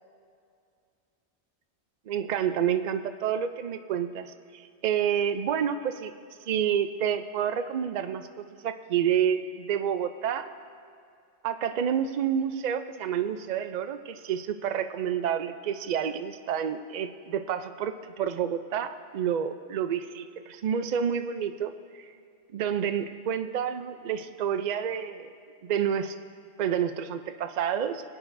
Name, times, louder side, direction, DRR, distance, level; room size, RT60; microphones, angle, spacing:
voice 1, 2.1-6.1 6.5-10.5 11.4-22.0 22.5-25.3 25.6-26.1 26.6-28.0, right 8 dB, 55° right, 9 dB, 0.5 m, -29 dB
21.5 x 8.9 x 2.6 m, 2.3 s
omnidirectional pair, 1.2 m